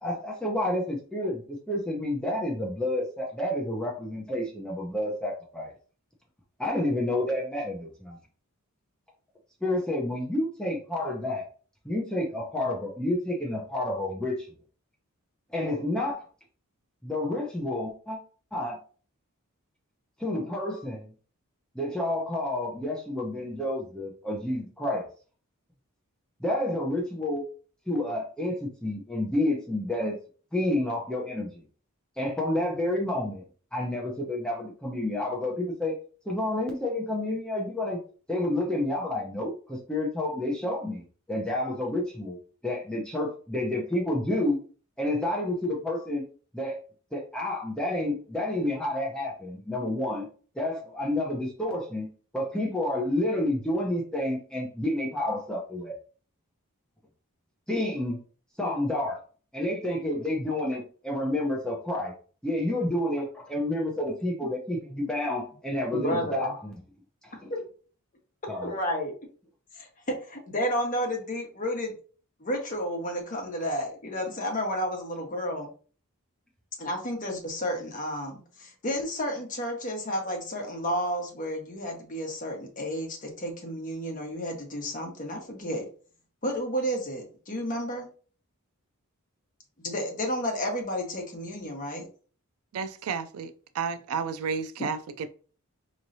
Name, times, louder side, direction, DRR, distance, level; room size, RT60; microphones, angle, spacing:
voice 1, 0.0-5.7 6.6-8.2 9.6-11.5 11.8-14.5 15.5-16.2 17.0-18.2 18.5-18.8 20.2-21.1 21.7-25.1 26.4-27.5 27.9-30.1 30.5-31.6 32.2-33.4 33.7-36.0 36.3-38.0 38.3-42.4 42.6-44.6 45.0-46.2 46.5-46.8 47.1-50.3 50.6-52.1 52.3-55.9 57.7-58.2 58.6-59.2 59.5-62.1 62.4-66.8 67.2-67.5 68.5-68.7, left 1 dB, 5° left, 0.7 m, -29 dB
voice 2, 65.9-66.5 67.5-67.6 68.6-69.1 69.7-71.9 72.4-75.7 76.8-85.9 86.4-88.1 89.8-92.1, equal, 35° left, 1.1 m, -31 dB
voice 3, 92.7-93.5 93.8-95.3, right 5 dB, 75° right, 0.4 m, -31 dB
4.4 x 3.1 x 2.7 m
head